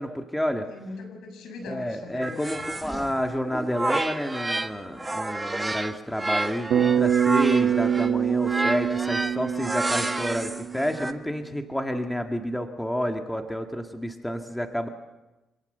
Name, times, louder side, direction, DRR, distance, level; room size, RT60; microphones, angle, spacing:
voice 1, 0.0-0.7 1.7-14.9, equal, 5° left, 4 dB, 1.9 m, -30 dB
voice 2, 0.7-2.6, left 3 dB, 80° left, 4 dB, 7.3 m, -40 dB
sound 1, 2.2-4.7 5.0-11.1, right 2 dB, 15° right, 1.4 m, -30 dB
Bass guitar, 6.7-11.1, right 8 dB, 70° right, 1.1 m, -24 dB
27.0 x 18.0 x 6.8 m, 1.0 s
cardioid pair, 90°, 0 cm